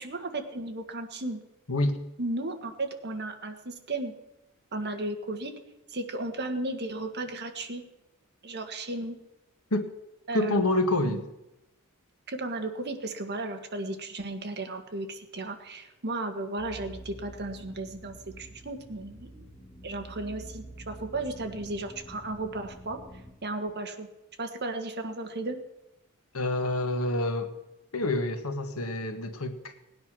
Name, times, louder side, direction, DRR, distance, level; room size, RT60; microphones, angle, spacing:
voice 1, 0.0-1.4 2.2-4.1 4.7-5.5 5.9-7.8 8.4-9.2 10.3-10.6 11.0-11.2 12.3-19.4 19.8-23.0 23.4-24.1 24.4-25.6, right 2 dB, 50° right, 1.6 m, -34 dB
voice 2, 1.7-2.0 9.7-9.9 10.3-11.2 26.3-27.6 27.9-29.8, left 2 dB, 85° left, 1.5 m, -27 dB
sound 1, 16.6-23.3, right 1 dB, 5° left, 2.2 m, -47 dB
18.5 x 9.6 x 6.2 m
head